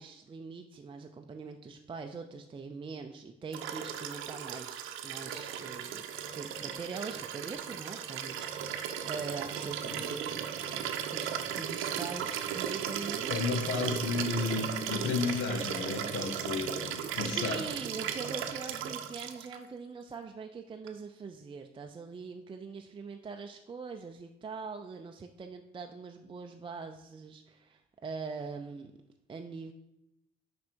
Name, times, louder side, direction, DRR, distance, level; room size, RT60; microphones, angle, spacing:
voice 1, 0.0-6.1 6.3-13.4 17.1-28.9 29.3-29.7, right 4 dB, 25° right, 4 dB, 0.4 m, -43 dB
Liquid, 3.5-19.6 20.9-21.0, right 9 dB, 90° right, 0.6 m, -36 dB
voice 2, 13.3-17.6, left 4 dB, 90° left, 6 dB, 0.9 m, -33 dB
6.1 x 5.2 x 4.5 m, 0.87 s
cardioid pair, 90°, 20 cm